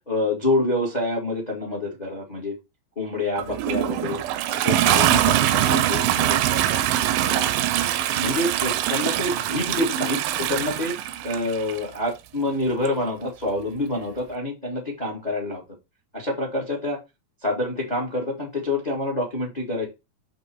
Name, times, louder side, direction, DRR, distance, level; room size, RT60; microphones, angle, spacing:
voice 1, 0.1-2.5 2.9-4.2 4.5-6.8 7.2-7.5 8.1-11.0 11.2-15.6 16.1-17.0 17.4-19.8, left 2 dB, 70° left, 1 dB, 0.4 m, -27 dB
Toilet flush, 3.4-11.8 12.9-13.0, right 12 dB, 80° right, 2.3 m, -23 dB
7.7 x 3.1 x 4.5 m, 0.25 s
omnidirectional pair, 4.2 m